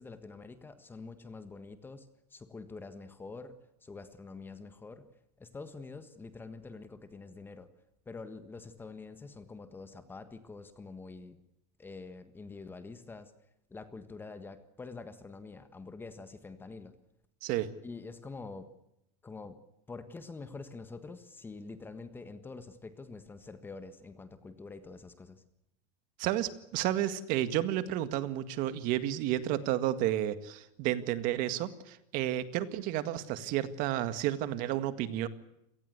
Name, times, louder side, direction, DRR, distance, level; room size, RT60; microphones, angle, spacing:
voice 1, 0.0-3.6 3.8-5.1 5.4-7.7 8.0-11.4 11.8-13.3 13.7-16.9 17.8-18.7 19.2-19.6 19.9-25.4, left 3 dB, 10° left, 10 dB, 1.5 m, -46 dB
voice 2, 26.2-35.3, right 13 dB, 45° right, 12 dB, 1.9 m, -31 dB
28.0 x 18.5 x 8.2 m, 0.82 s
supercardioid pair, 160°, 20 cm